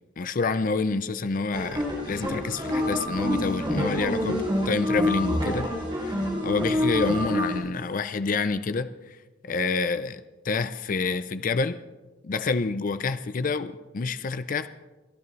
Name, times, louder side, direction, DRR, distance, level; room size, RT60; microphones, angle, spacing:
voice 1, 0.2-5.7 6.0-8.9 9.5-11.8 12.2-14.7, left 4 dB, 50° left, 12 dB, 0.5 m, -28 dB
sound 1, 1.5-7.6, left 1 dB, 25° right, 4.4 m, -27 dB
30.0 x 11.0 x 3.2 m, 1.2 s
head